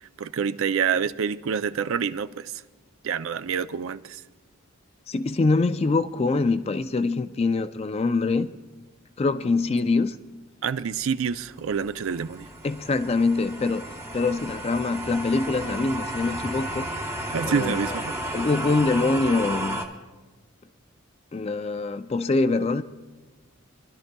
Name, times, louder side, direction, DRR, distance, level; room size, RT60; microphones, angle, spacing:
voice 1, 0.0-2.6 3.0-4.2 10.6-12.5 17.3-18.1, right 6 dB, 65° right, 0.4 m, -27 dB
voice 2, 5.1-8.5 9.2-10.2 12.6-13.8 14.1-16.9 17.4-18.0 18.3-19.8 21.3-22.8, left 3 dB, 25° left, 0.3 m, -24 dB
sound 1, 11.0-19.8, right 1 dB, 10° right, 0.7 m, -33 dB
26.0 x 12.0 x 2.3 m
head